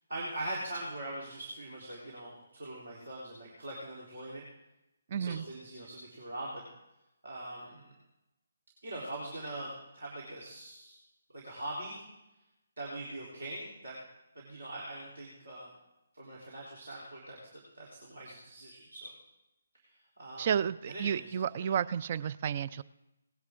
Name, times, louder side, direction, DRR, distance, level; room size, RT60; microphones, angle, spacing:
voice 1, 0.1-4.5 5.2-6.7 7.2-7.9 8.8-11.0 11.3-12.0 12.8-14.0 14.4-15.8 16.1-19.1 19.8-20.5 20.8-21.7, right 1 dB, 60° right, -5 dB, 3.4 m, -42 dB
voice 2, 5.1-5.4 20.4-22.8, right 8 dB, 35° right, 16 dB, 0.4 m, -31 dB
18.5 x 10.5 x 3.7 m, 0.92 s
figure-of-eight pair, 140°, 0 cm